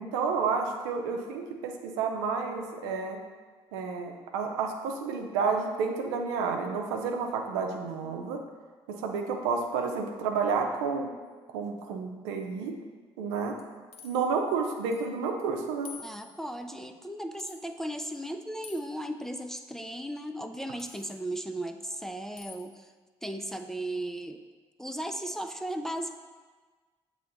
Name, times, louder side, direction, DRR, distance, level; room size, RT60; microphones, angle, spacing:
voice 1, 0.0-3.2 3.7-8.4 8.9-11.1 11.5-12.8 13.2-13.6 14.0-15.9, right 5 dB, 75° right, 3 dB, 0.6 m, -30 dB
sound 1, 13.6-14.3 14.9-15.1 15.4-15.5 15.9-16.5 17.4-17.6 18.6-19.0 20.8-21.2 22.4-22.7, left 5 dB, 45° left, 0.8 m, -48 dB
voice 2, 16.0-22.9 23.2-24.4 24.8-26.2, right 1 dB, 5° left, 7 dB, 0.4 m, -36 dB
7.6 x 3.1 x 3.9 m, 1.4 s
hypercardioid pair, 50°, 14 cm